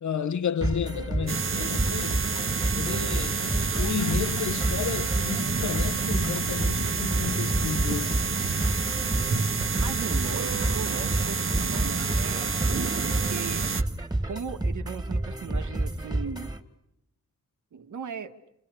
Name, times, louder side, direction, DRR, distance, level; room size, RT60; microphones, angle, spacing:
voice 1, 0.0-2.2 2.7-8.4, left 7 dB, 70° left, 1.0 m, -32 dB
sound 1, 0.6-16.6, right 1 dB, 15° right, 2.2 m, -30 dB
sound 2, 1.3-13.8, right 4 dB, 45° right, 1.3 m, -28 dB
voice 2, 9.8-12.5 12.9-13.7 14.3-16.5 17.7-18.4, right 6 dB, 80° right, 1.6 m, -38 dB
29.5 x 29.0 x 6.7 m
wide cardioid pair, 120°, 30 cm